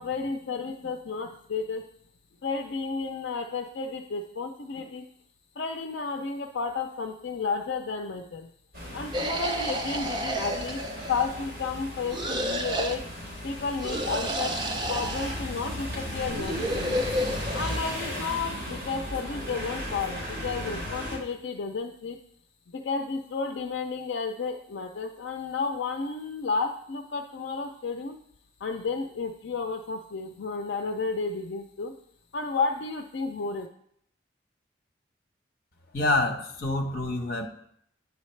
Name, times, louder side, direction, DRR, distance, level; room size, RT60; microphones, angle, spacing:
voice 1, 0.0-1.8 2.4-5.1 5.6-8.5 8.9-13.1 13.4-14.5 14.9-17.0 17.5-22.2 22.7-28.2 28.6-32.0 32.3-33.7, left 4 dB, 70° left, 5 dB, 0.5 m, -32 dB
sound 1, 8.7-21.2, equal, 50° right, 2.8 m, -36 dB
sound 2, 9.1-11.4 12.1-13.0 13.8-15.4 16.2-17.8, equal, 25° right, 0.6 m, -31 dB
voice 2, 35.9-37.5, left 2 dB, 50° left, 3 dB, 1.0 m, -27 dB
8.3 x 7.3 x 3.2 m, 0.71 s
head